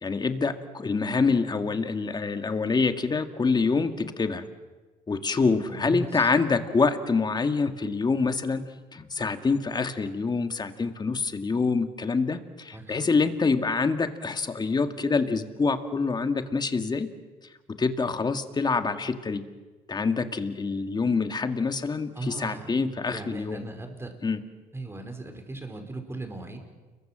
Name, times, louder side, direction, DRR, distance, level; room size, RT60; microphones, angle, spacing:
voice 1, 0.0-4.5 5.1-8.6 8.9-17.1 17.7-19.5 19.9-23.6 24.2-24.4, left 4 dB, 25° left, 8 dB, 2.1 m, -26 dB
voice 2, 5.7-6.3 12.7-13.0 22.1-22.7 23.1-24.1 24.7-26.6, right 2 dB, 15° right, 4 dB, 5.2 m, -37 dB
29.5 x 23.0 x 7.6 m, 1.3 s
cardioid pair, 110°, 17 cm